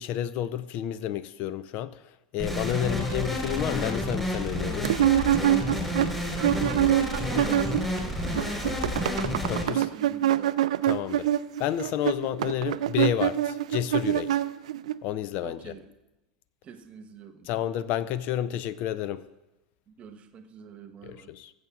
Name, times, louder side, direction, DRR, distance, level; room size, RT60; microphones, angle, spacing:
voice 1, 0.0-2.0 2.3-4.9 9.5-9.9 10.8-11.3 11.6-14.4 15.0-15.7 17.5-19.2 21.0-21.5, left 11 dB, 45° left, 0.5 m, -30 dB
sound 1, 2.4-9.6, left 1 dB, 5° left, 4.1 m, -30 dB
sound 2, 4.8-8.0 8.2-14.9, right 12 dB, 70° right, 0.4 m, -25 dB
voice 2, 6.3-9.2 9.6-10.6 15.4-15.8 16.6-17.5 19.9-21.3, right 6 dB, 35° right, 1.1 m, -45 dB
21.0 x 7.8 x 2.4 m
figure-of-eight pair, 85°, 4 cm